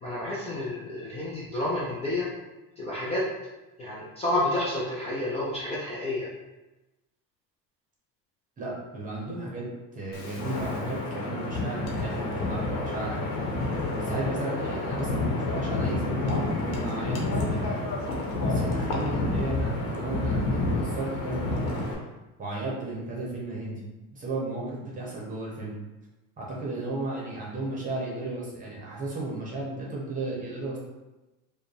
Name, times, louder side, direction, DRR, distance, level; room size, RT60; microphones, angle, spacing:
voice 1, 0.0-2.3 2.8-3.2 3.8-6.3, left 1 dB, 20° left, -7 dB, 0.4 m, -30 dB
voice 2, 8.6-9.7 9.9-13.2 13.9-17.9 18.4-21.9 22.4-23.8 24.1-25.8 26.4-30.8, right 2 dB, 20° right, -4 dB, 0.9 m, -34 dB
Wind, 10.1-21.9, left 2 dB, 85° left, 1.0 m, -29 dB
4.7 x 2.3 x 3.3 m, 1.1 s
cardioid pair, 175°, 35 cm